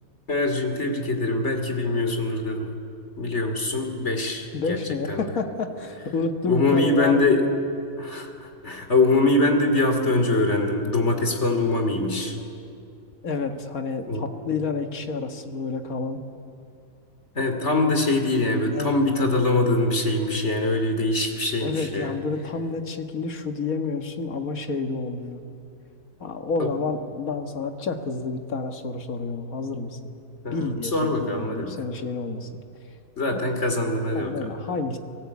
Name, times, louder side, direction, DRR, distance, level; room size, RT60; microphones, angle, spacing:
voice 1, 0.3-2.7 3.2-4.8 5.1-5.3 6.5-7.4 8.0-12.4 14.1-14.3 17.3-22.1 26.6-26.7 30.4-31.7 33.2-34.3, left 2 dB, 50° left, 5 dB, 3.1 m, -23 dB
voice 2, 4.5-7.4 13.2-16.2 18.7-18.9 21.6-25.4 26.2-30.1 30.5-32.5 33.3-33.4 34.1-35.0, left 4 dB, 80° left, 5 dB, 2.0 m, -29 dB
30.0 x 18.5 x 8.4 m, 2.6 s
omnidirectional pair, 1.5 m